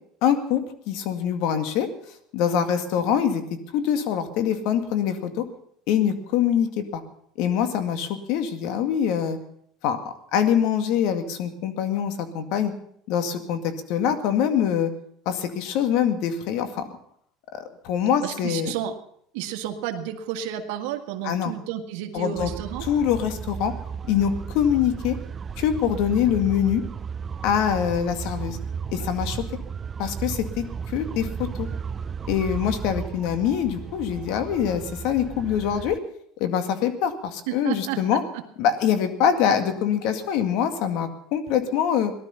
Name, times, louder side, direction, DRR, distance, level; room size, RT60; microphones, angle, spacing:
voice 1, 0.2-1.9 2.3-5.4 5.9-7.0 7.4-9.4 9.8-12.7 13.1-14.9 15.3-16.8 17.5-18.7 21.2-21.5 22.1-22.5 22.8-23.7 24.1-25.2 25.6-26.8 27.4-28.6 28.9-29.4 30.0-31.7 32.3-36.0 36.4-38.2 38.6-42.1, left 8 dB, 70° left, 8 dB, 2.1 m, -24 dB
voice 2, 18.2-18.9 19.3-22.9 37.5-38.4, right 10 dB, 80° right, 6 dB, 1.7 m, -31 dB
sound 1, 22.4-36.0, right 6 dB, 30° right, 0.5 m, -34 dB
18.0 x 12.5 x 5.7 m, 0.68 s
supercardioid pair, 115°, 0 cm